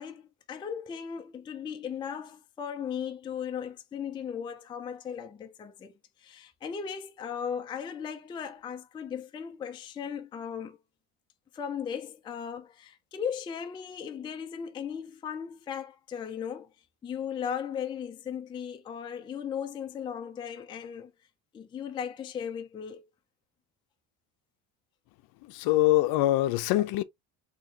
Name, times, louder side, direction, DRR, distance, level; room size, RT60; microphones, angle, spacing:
voice 1, 0.0-10.8 11.5-16.7 17.0-21.1 21.5-23.0, left 7 dB, 10° left, 0.3 m, -37 dB
voice 2, 25.6-27.0, left 16 dB, 60° left, 0.6 m, -23 dB
4.0 x 2.9 x 2.8 m
cardioid pair, 150°, 43 cm